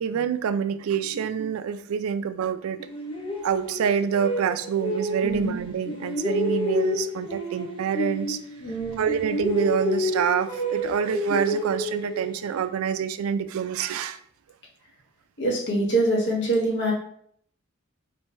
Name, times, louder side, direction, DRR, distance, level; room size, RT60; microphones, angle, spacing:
voice 1, 0.0-2.8 3.4-8.4 9.0-14.2, right 7 dB, 85° right, 12 dB, 0.3 m, -27 dB
sound 1, 2.8-5.5 5.9-8.8 9.1-12.6, equal, 25° left, 0.9 m, -29 dB
voice 2, 8.6-9.0 15.4-16.9, right 1 dB, 55° left, -1 dB, 1.2 m, -24 dB
4.3 x 2.2 x 4.3 m, 0.64 s
head